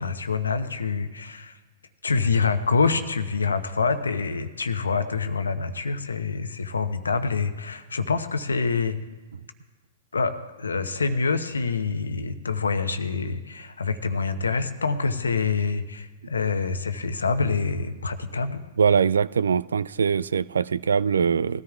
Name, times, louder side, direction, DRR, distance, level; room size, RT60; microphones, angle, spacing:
voice 1, 0.0-1.6 2.0-9.0 10.1-18.6, left 4 dB, 85° left, 0.8 m, -26 dB
voice 2, 18.8-21.6, right 6 dB, 80° right, 0.3 m, -22 dB
20.5 x 13.0 x 2.4 m
hypercardioid pair, 110°, 0 cm